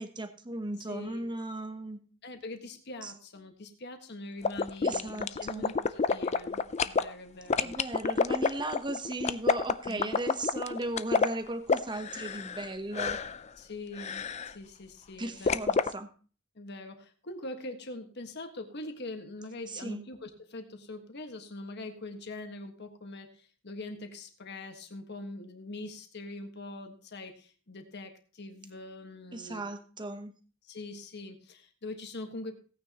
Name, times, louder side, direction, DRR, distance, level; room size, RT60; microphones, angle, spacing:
voice 1, 0.0-2.0 3.0-3.1 4.8-5.7 7.5-13.2 15.2-16.1 19.7-20.0 29.3-30.3, right 2 dB, 20° right, 9 dB, 1.0 m, -37 dB
voice 2, 0.9-1.3 2.2-7.8 9.9-10.1 13.6-15.7 16.5-29.6 30.6-32.6, left 2 dB, 55° left, 6 dB, 1.5 m, -43 dB
sound 1, 4.4-7.0 7.5-12.7 12.9-13.4 14.0-14.5 15.5-15.9, left 5 dB, 35° left, 0.4 m, -28 dB
17.0 x 9.2 x 2.9 m, 0.39 s
head